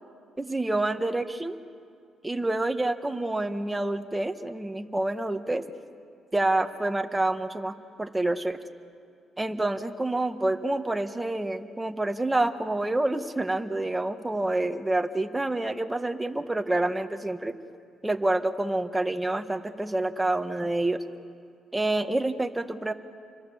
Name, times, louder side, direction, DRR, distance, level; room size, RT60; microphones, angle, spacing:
voice 1, 0.4-1.6 2.2-5.6 6.3-8.6 9.4-17.5 18.0-21.0 21.7-22.9, right 2 dB, 10° right, 7 dB, 1.5 m, -28 dB
29.0 x 24.5 x 7.2 m, 2.3 s
cardioid pair, 90°, 0 cm